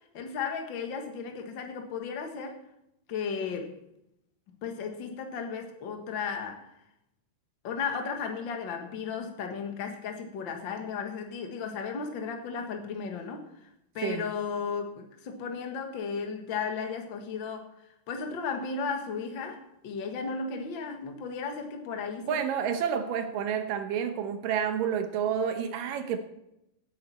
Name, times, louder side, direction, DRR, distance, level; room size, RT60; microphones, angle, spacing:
voice 1, 0.1-2.6 3.1-3.8 4.6-6.7 7.6-17.7 18.1-22.4, left 5 dB, 55° left, 4 dB, 1.3 m, -35 dB
voice 2, 22.2-26.2, right 8 dB, 70° right, 8 dB, 2.3 m, -29 dB
17.5 x 10.0 x 4.4 m, 0.83 s
omnidirectional pair, 4.8 m